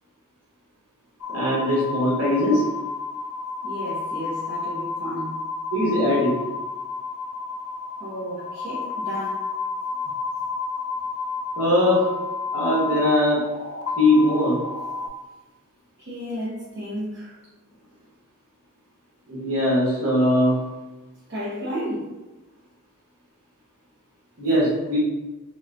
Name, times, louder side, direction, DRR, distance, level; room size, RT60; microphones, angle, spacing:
sound 1, 1.2-15.1, left 4 dB, 75° left, 0.5 m, -31 dB
voice 1, 1.3-2.7 5.7-6.4 11.6-12.1 12.5-13.5 14.0-14.6 19.3-20.6 24.4-25.0, left 1 dB, 70° right, 1.3 m, -20 dB
voice 2, 3.6-5.5 8.0-9.5 10.0-10.1 16.0-17.4 21.3-22.2, equal, 50° right, 0.8 m, -33 dB
3.9 x 2.2 x 2.5 m
head